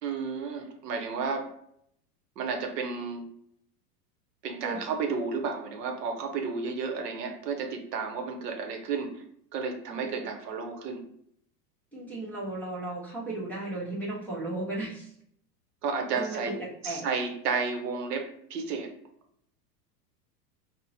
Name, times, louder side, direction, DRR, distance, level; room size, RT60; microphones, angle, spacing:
voice 1, 0.0-1.5 2.4-3.3 4.4-9.2 9.5-11.0 15.8-16.6 16.8-18.9, right 5 dB, 75° right, 4 dB, 0.8 m, -32 dB
voice 2, 11.9-15.1 16.1-16.5 16.8-17.1, right 2 dB, 5° left, -6 dB, 0.8 m, -35 dB
3.7 x 2.1 x 2.7 m, 0.69 s
hypercardioid pair, 110°, 49 cm